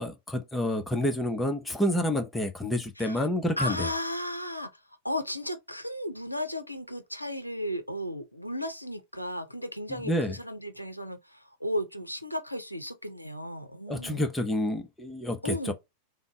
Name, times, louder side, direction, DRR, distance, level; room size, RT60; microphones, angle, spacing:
voice 1, 0.0-3.9 10.0-10.3 13.9-15.7, left 1 dB, 10° left, 0.7 m, -28 dB
voice 2, 3.0-3.3 3.6-14.2 15.4-15.7, left 1 dB, 90° left, 0.5 m, -35 dB
3.7 x 2.0 x 3.8 m
figure-of-eight pair, 90°, 0 cm